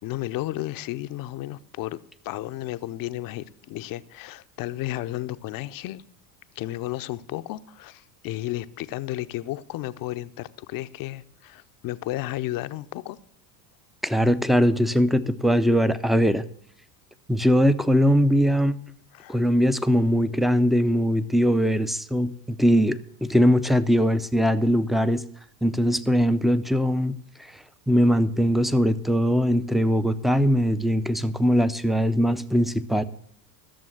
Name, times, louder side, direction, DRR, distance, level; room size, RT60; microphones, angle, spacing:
voice 1, 0.0-2.0 2.2-6.0 6.6-13.2 19.1-19.4, left 15 dB, 45° left, 0.7 m, -33 dB
voice 2, 14.0-16.4 17.3-18.8 19.3-25.2 25.6-27.5 27.9-33.0, equal, ahead, 0.5 m, -21 dB
14.0 x 7.0 x 7.7 m
hypercardioid pair, 80°, 50 cm